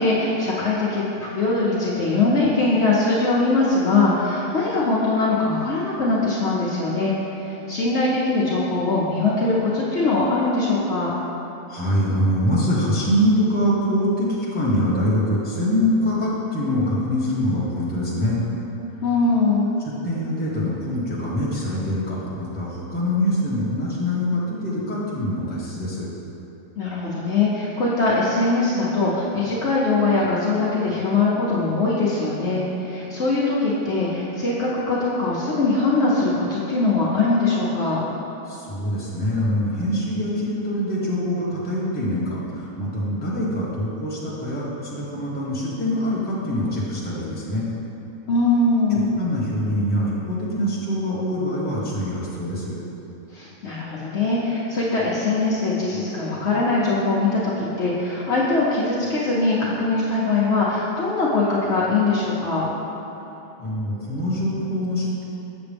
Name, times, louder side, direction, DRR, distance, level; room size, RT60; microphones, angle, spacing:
voice 1, 0.0-11.1 19.0-19.7 26.8-38.0 48.3-49.1 53.3-62.7, left 3 dB, 55° left, -7 dB, 1.1 m, -21 dB
voice 2, 11.7-18.4 20.0-26.1 38.5-47.6 48.9-52.7 63.6-65.2, equal, 5° left, -8 dB, 1.2 m, -24 dB
7.4 x 6.9 x 3.4 m, 3.0 s
omnidirectional pair, 1.4 m